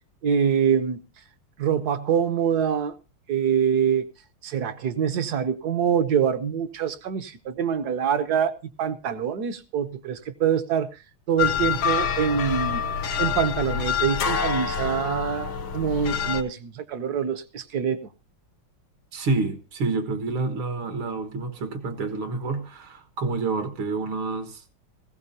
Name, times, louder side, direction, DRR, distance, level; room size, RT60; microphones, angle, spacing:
voice 1, 0.2-1.0 1.6-2.9 3.3-4.0 4.4-11.0 11.3-12.9 13.2-18.1, right 8 dB, 60° right, 1.2 m, -25 dB
sound 1, 11.4-16.4, left 7 dB, 80° left, 1.8 m, -26 dB
voice 2, 19.1-24.6, right 3 dB, 80° right, 2.3 m, -28 dB
17.5 x 16.0 x 2.7 m
omnidirectional pair, 2.3 m